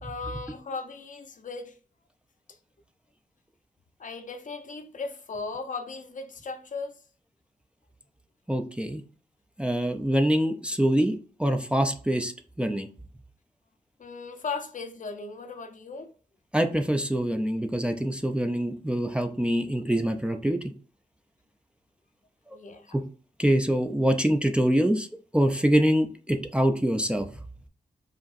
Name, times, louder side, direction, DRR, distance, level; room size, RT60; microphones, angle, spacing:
voice 1, 0.0-1.7 4.0-7.0 14.0-16.1 22.5-22.9, left 4 dB, 55° left, 0.7 m, -37 dB
voice 2, 8.5-9.0 9.6-12.3 12.6-12.9 16.5-20.6 22.5-22.6 22.9-23.0 23.4-25.1 25.3-27.3, equal, 5° right, 0.5 m, -25 dB
5.0 x 2.9 x 2.5 m
cardioid pair, 70°, 15 cm